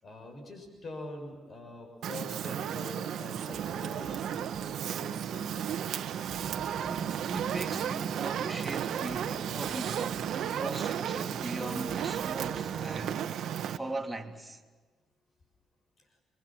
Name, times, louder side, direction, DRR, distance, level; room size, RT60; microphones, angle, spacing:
voice 1, 0.0-5.9, left 2 dB, 45° left, 6.6 m, -45 dB
Fire, 2.0-13.8, right 9 dB, 75° right, 1.5 m, -34 dB
sound 1, 3.5-13.2, right 6 dB, 60° right, 2.3 m, -42 dB
voice 2, 6.8-13.3 13.8-14.6, right 2 dB, 5° right, 3.1 m, -39 dB
28.0 x 24.0 x 7.5 m
cardioid pair, 90°, 0 cm